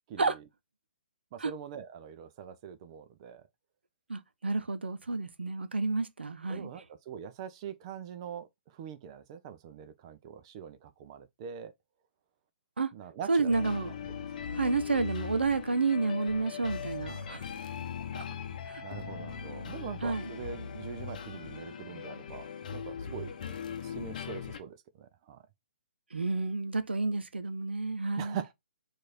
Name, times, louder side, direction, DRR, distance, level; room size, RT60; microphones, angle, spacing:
voice 1, 0.1-0.4 1.3-3.4 6.5-11.7 12.9-13.6 14.5-14.6 18.1-18.3 18.8-23.3 23.8-25.4 28.2-28.5, right 8 dB, 30° right, 0.5 m, -43 dB
voice 2, 4.1-6.7 12.8-12.9 13.3-13.9 14.5-17.4 18.7-18.8 20.0-20.2 26.1-28.4, right 3 dB, 70° right, 0.6 m, -30 dB
sound 1, 13.5-24.6, left 7 dB, 45° left, 0.7 m, -40 dB
4.7 x 2.6 x 4.1 m
figure-of-eight pair, 130°, 6 cm